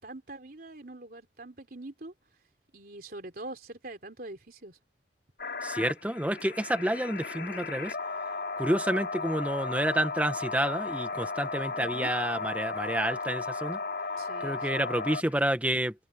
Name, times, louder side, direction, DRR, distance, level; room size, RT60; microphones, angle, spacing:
voice 1, 0.0-2.1 2.7-4.8 11.7-12.1 14.2-14.8, right 2 dB, 50° right, 3.5 m, -44 dB
sound 1, 5.4-15.5, left 4 dB, 60° left, 5.0 m, -35 dB
voice 2, 5.6-7.9 8.6-13.8 14.4-15.9, right 1 dB, 10° right, 1.2 m, -29 dB
head